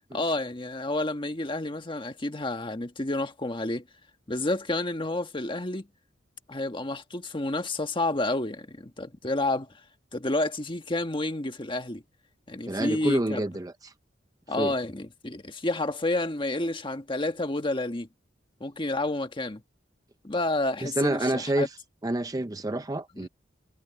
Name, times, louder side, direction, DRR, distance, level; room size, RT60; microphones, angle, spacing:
voice 1, 0.1-3.8 4.3-5.9 6.5-9.7 10.1-12.0 12.5-13.4 14.5-18.1 18.6-19.6 20.2-21.7 23.2-23.3, left 2 dB, 30° left, 1.5 m, -30 dB
voice 2, 12.7-13.9 14.6-14.7 20.8-21.7 22.0-23.3, right 1 dB, 20° right, 0.6 m, -28 dB
head